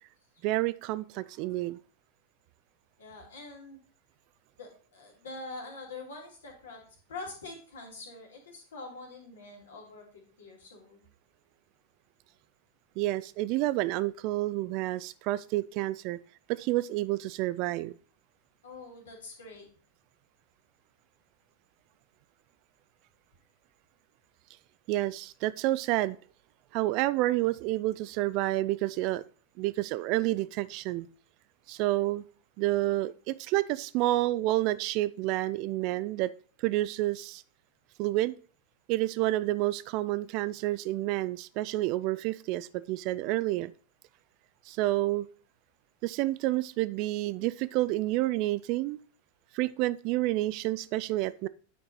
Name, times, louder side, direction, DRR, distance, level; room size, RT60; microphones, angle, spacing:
voice 1, 0.4-1.8 13.0-16.2 16.5-17.9 24.9-26.2 26.7-29.2 29.6-31.1 31.7-32.2 32.6-36.3 36.6-37.4 38.0-38.3 38.9-43.7 44.7-45.3 46.0-49.0 49.5-51.5, right 17 dB, 45° right, 17 dB, 0.3 m, -29 dB
voice 2, 3.0-3.8 4.6-6.8 7.1-11.0 18.6-19.7, left 3 dB, 65° left, 1 dB, 2.4 m, -45 dB
9.2 x 4.6 x 4.0 m, 0.42 s
figure-of-eight pair, 90°, 0 cm